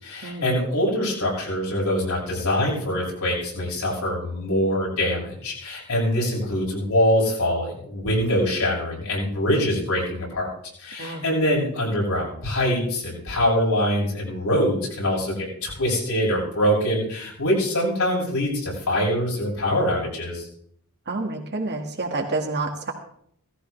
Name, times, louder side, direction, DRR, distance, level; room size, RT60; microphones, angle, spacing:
voice 1, 0.0-10.5 10.8-20.5, equal, 80° left, -4 dB, 6.7 m, -24 dB
voice 2, 21.1-22.9, right 3 dB, 50° right, 3 dB, 2.0 m, -28 dB
16.5 x 14.0 x 3.3 m, 0.66 s
head